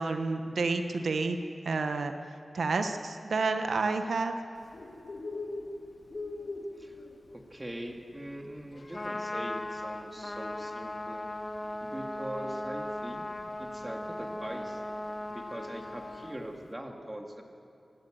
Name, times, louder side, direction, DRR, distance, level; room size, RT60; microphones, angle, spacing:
voice 1, 0.0-1.4 1.6-2.1 2.5-4.4, right 3 dB, 85° right, 6 dB, 1.0 m, -29 dB
Bird, 4.6-16.7, left 2 dB, 55° left, 1.8 m, -45 dB
voice 2, 7.3-11.3 11.8-13.3 13.6-14.8 15.3-17.4, right 1 dB, 15° right, 2 dB, 2.2 m, -42 dB
Trumpet, 8.8-16.4, left 1 dB, 35° left, 1.6 m, -38 dB
25.5 x 12.0 x 9.2 m, 2.9 s
wide cardioid pair, 100°, 0 cm